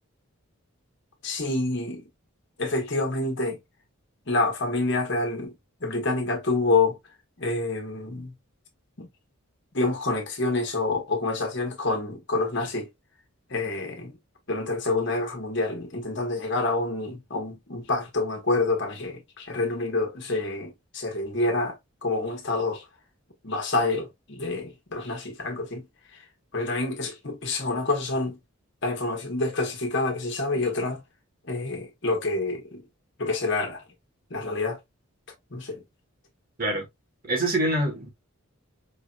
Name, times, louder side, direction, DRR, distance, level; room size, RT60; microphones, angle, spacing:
voice 1, 1.2-2.0 2.6-3.6 4.3-5.5 5.8-7.0 7.4-8.3 9.0-9.1 9.7-12.9 13.5-14.1 14.5-21.7 22.0-22.8 23.4-25.9 26.5-28.4 28.8-31.0 31.5-32.8 33.2-33.8 34.3-34.8 35.5-35.8, left 3 dB, 55° left, 1.2 m, -27 dB
voice 2, 37.2-38.1, right 1 dB, 40° right, 1.7 m, -25 dB
4.8 x 2.8 x 2.3 m
head